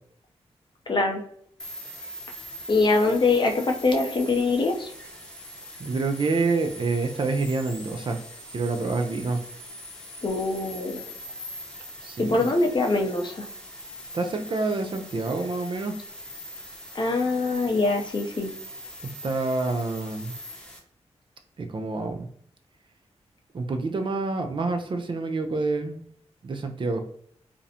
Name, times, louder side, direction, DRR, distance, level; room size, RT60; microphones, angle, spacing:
voice 1, 0.9-1.2 2.7-4.9 10.2-11.1 12.2-13.5 16.9-18.5, left 3 dB, 45° left, 3 dB, 0.5 m, -23 dB
sound 1, 1.6-20.8, equal, 5° left, 0.8 m, -42 dB
voice 2, 5.8-8.2 8.5-9.4 12.0-12.4 14.1-15.9 19.0-20.3 21.6-22.3 23.5-26.0 26.4-27.0, right 3 dB, 45° right, 5 dB, 0.4 m, -27 dB
2.5 x 2.0 x 2.7 m, 0.64 s
cardioid pair, 65°, 12 cm